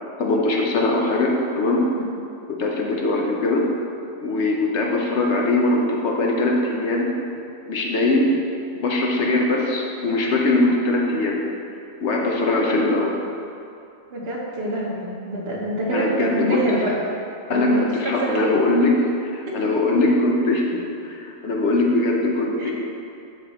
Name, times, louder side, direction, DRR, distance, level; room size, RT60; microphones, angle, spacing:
voice 1, 0.2-1.8 2.6-3.6 4.2-7.1 7.7-8.4 8.7-11.4 12.0-13.1 15.9-16.6 17.5-18.9 19.2-22.7, left 2 dB, 60° left, -1 dB, 1.1 m, -21 dB
voice 2, 14.1-17.0 17.5-18.6 22.6-22.7, right 1 dB, 50° right, -3 dB, 1.3 m, -26 dB
6.2 x 5.2 x 4.2 m, 2.6 s
omnidirectional pair, 1.4 m